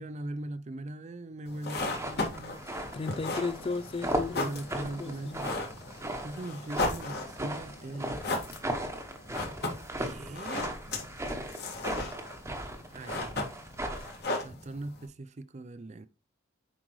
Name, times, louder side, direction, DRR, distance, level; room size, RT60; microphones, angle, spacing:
voice 1, 0.0-2.7 4.3-5.5 6.2-8.2 10.0-10.7 12.9-13.3 14.4-16.1, right 2 dB, 35° right, 0.5 m, -40 dB
sound 1, 1.5-15.1, left 2 dB, 55° left, 1.9 m, -37 dB
sound 2, 1.8-14.2, right 1 dB, 15° right, 1.0 m, -37 dB
voice 2, 2.7-4.5 4.8-5.4 7.9-8.0, left 4 dB, 30° left, 0.3 m, -35 dB
7.4 x 5.1 x 3.1 m
head